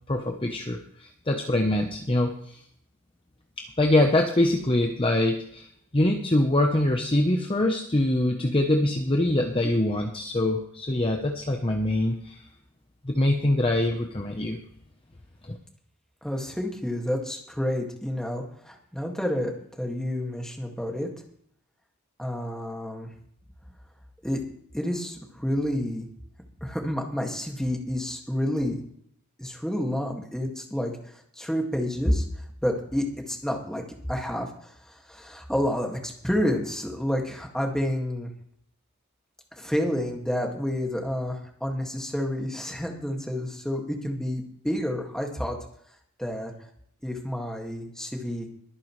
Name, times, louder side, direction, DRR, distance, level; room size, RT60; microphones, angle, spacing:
voice 1, 0.1-2.6 3.8-5.7 5.9-12.4 13.0-14.6 15.5-15.6, left 1 dB, 25° left, 3 dB, 0.8 m, -24 dB
voice 2, 16.2-21.1 22.2-23.1 24.2-24.4 24.7-26.1 26.6-28.8 29.4-32.3 32.6-33.8 34.1-38.3 39.6-45.6 46.2-46.5 47.0-48.5, equal, 5° left, 1 dB, 2.0 m, -29 dB
22.5 x 9.4 x 3.2 m, 0.66 s
head